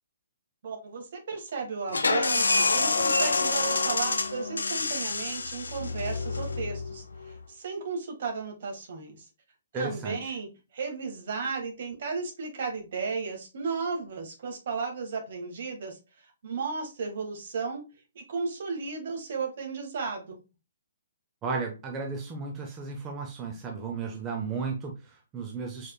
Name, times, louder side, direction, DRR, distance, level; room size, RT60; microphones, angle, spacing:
voice 1, 0.6-9.2 9.7-17.8 18.1-20.4, right 4 dB, 60° right, 3 dB, 1.5 m, -34 dB
sound 1, 1.9-7.3, left 3 dB, 85° left, 0.7 m, -27 dB
voice 2, 9.7-10.2 21.4-25.9, right 4 dB, 20° right, 2 dB, 0.8 m, -34 dB
4.9 x 4.1 x 2.2 m, 0.29 s
hypercardioid pair, 135°, 0 cm